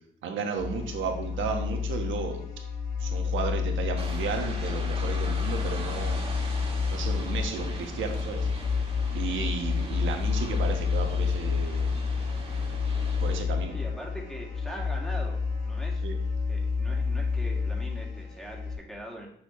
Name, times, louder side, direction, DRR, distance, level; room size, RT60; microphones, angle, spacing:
voice 1, 0.2-2.4 3.0-6.2 6.9-8.5 9.1-11.9 13.2-13.8 16.0-16.2, right 5 dB, 75° right, 3 dB, 1.3 m, -33 dB
sound 1, 0.6-18.7, left 5 dB, 80° left, 1.8 m, -29 dB
sound 2, 4.0-13.4, right 2 dB, 30° right, 1.9 m, -41 dB
voice 2, 13.7-16.1 16.5-19.3, equal, 5° left, -1 dB, 2.0 m, -42 dB
6.3 x 6.2 x 3.2 m, 0.71 s
cardioid pair, 90°, 20 cm